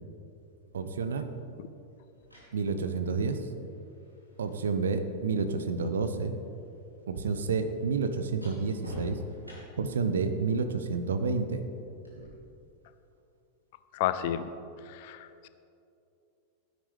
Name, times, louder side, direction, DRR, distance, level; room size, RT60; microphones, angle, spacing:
voice 1, 0.7-1.2 2.5-3.5 4.4-6.3 7.1-9.2 9.8-11.6, right 4 dB, 65° right, 9 dB, 0.8 m, -29 dB
sound 1, 0.7-0.8 1.9-6.0 6.2-10.0 12.0-12.3, left 1 dB, 90° right, 3.0 m, -49 dB
voice 2, 13.9-14.5 14.9-15.5, left 11 dB, 50° left, 12 dB, 0.5 m, -31 dB
16.0 x 9.2 x 3.4 m, 2.7 s
figure-of-eight pair, 90°, 0 cm